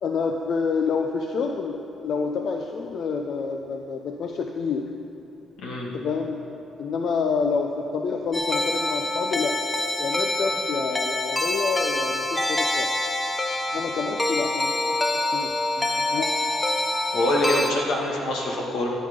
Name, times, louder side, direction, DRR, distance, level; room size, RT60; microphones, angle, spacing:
voice 1, 0.0-4.9 5.9-6.4 6.8-9.6 10.0-12.9 13.7-16.5, left 5 dB, 65° left, 3 dB, 0.7 m, -28 dB
sound 1, 8.3-17.7, left 2 dB, 15° left, 0.9 m, -26 dB
voice 2, 17.1-18.9, left 1 dB, 85° left, -2 dB, 2.1 m, -25 dB
14.0 x 8.8 x 5.3 m, 2.8 s
cardioid pair, 90°, 0 cm